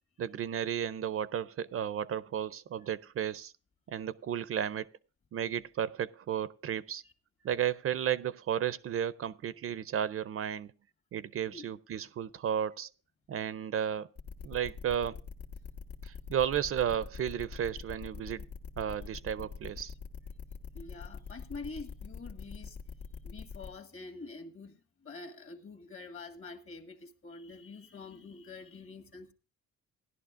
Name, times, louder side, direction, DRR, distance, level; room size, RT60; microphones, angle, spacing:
voice 1, 0.2-3.5 3.9-4.9 5.3-7.0 7.4-10.7 11.1-12.9 13.3-14.1 14.4-15.2 16.0-18.5 18.8-19.9, right 9 dB, 50° right, 0.5 m, -33 dB
sound 1, 14.2-23.7, left 5 dB, 70° left, 1.7 m, -43 dB
voice 2, 20.7-22.8 23.2-29.3, left 3 dB, 45° left, 1.8 m, -46 dB
16.5 x 11.0 x 2.5 m
cardioid pair, 90°, 30 cm